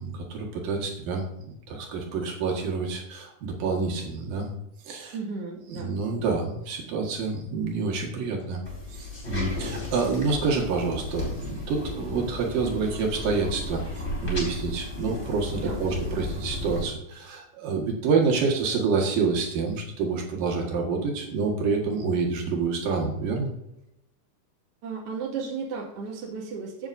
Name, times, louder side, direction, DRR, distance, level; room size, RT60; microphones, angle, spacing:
voice 1, 0.0-4.5 4.9-5.2 5.7-8.6 8.9-13.8 14.2-23.5, right 4 dB, 75° right, -1 dB, 3.4 m, -28 dB
voice 2, 5.1-5.9 15.6-16.0 24.8-26.9, right 5 dB, 45° right, -3 dB, 2.6 m, -34 dB
sound 1, 8.7-16.8, left 2 dB, 25° left, 4.3 m, -34 dB
16.0 x 7.2 x 2.7 m, 0.83 s
omnidirectional pair, 3.9 m